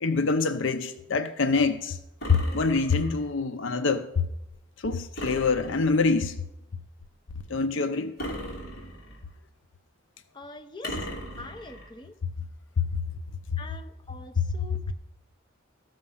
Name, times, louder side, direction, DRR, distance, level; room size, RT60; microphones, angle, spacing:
voice 1, 0.0-2.0 2.3-4.3 4.8-6.4 7.5-8.1 12.8-12.9, left 4 dB, 65° left, 0.6 m, -25 dB
sound 1, 2.2-3.3 5.2-6.2 8.2-9.3 10.8-11.9, equal, 50° left, 2.8 m, -38 dB
voice 2, 10.3-11.0 11.4-12.1 13.6-14.9, left 2 dB, 20° left, 0.7 m, -44 dB
14.0 x 6.5 x 5.7 m
head